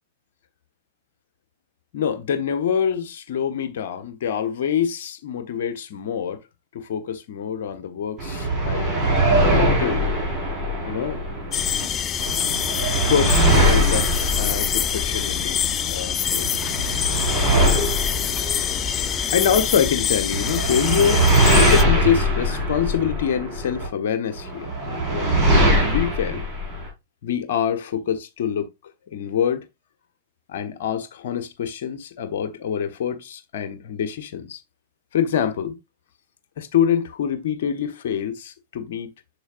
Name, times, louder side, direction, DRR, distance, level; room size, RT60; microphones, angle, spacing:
voice 1, 1.9-6.4 6.7-9.0 9.5-10.0 10.9-11.2 11.7-12.1 12.9-16.5 19.3-25.5 25.8-26.4 27.2-28.7 29.1-29.6 30.5-34.6 35.1-35.8 36.6-39.1, left 8 dB, 55° left, 1.3 m, -25 dB
sound 1, 8.2-11.9 12.2-15.9 16.2-19.9 20.3-23.9 24.4-26.9, right 1 dB, 25° right, 4.4 m, -22 dB
sound 2, 11.5-21.8, left 8 dB, 25° left, 0.5 m, -25 dB
7.1 x 7.0 x 2.4 m
figure-of-eight pair, 100°, 0 cm